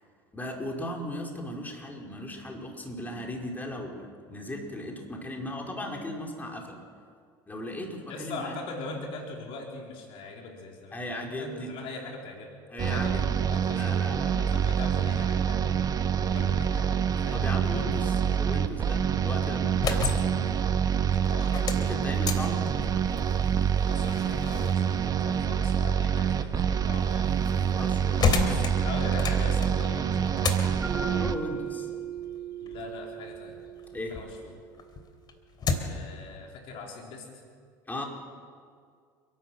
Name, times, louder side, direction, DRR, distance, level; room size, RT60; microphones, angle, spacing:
voice 1, 0.3-6.8 7.5-8.6 10.9-11.7 12.7-13.4 13.7-14.5 17.3-20.2 21.8-22.7 27.7-28.4 31.2-31.9 33.9-34.1 37.9-38.0, left 1 dB, 15° left, 0 dB, 4.7 m, -37 dB
voice 2, 8.1-12.6 12.9-13.8 14.3-15.8 16.2-17.4 19.9-20.0 21.3-21.6 23.9-27.3 28.4-30.9 32.6-33.6 34.1-34.6 35.8-37.3, left 3 dB, 60° left, 0 dB, 3.9 m, -41 dB
sound 1, 12.8-31.4, right 8 dB, 35° right, 1.2 m, -26 dB
sound 2, 19.6-34.3 34.7-36.1, left 4 dB, 45° left, 3.1 m, -34 dB
Mallet percussion, 30.8-34.9, right 7 dB, 5° right, 8.0 m, -38 dB
29.5 x 12.0 x 7.9 m, 2.1 s
hypercardioid pair, 85°, 10 cm